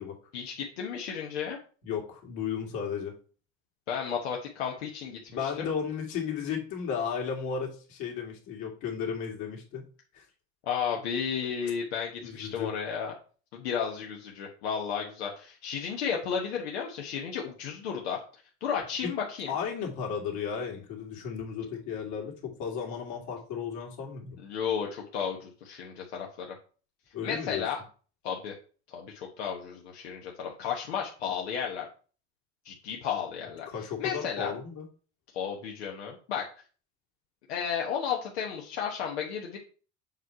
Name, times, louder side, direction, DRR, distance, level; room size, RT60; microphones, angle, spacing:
voice 1, 0.3-1.6 3.9-5.7 10.7-13.1 13.5-18.2 18.6-19.5 24.4-26.5 27.2-27.8 28.2-28.5 28.9-31.9 32.6-34.6 35.3-36.4 37.5-39.6, left 7 dB, 90° left, 0 dB, 1.2 m, -33 dB
voice 2, 1.8-3.1 5.3-9.8 10.1-10.2 12.2-12.7 19.5-24.4 27.1-27.6 33.7-34.9, left 7 dB, 65° left, 0 dB, 2.5 m, -34 dB
7.3 x 3.2 x 5.6 m, 0.39 s
supercardioid pair, 100°, 31 cm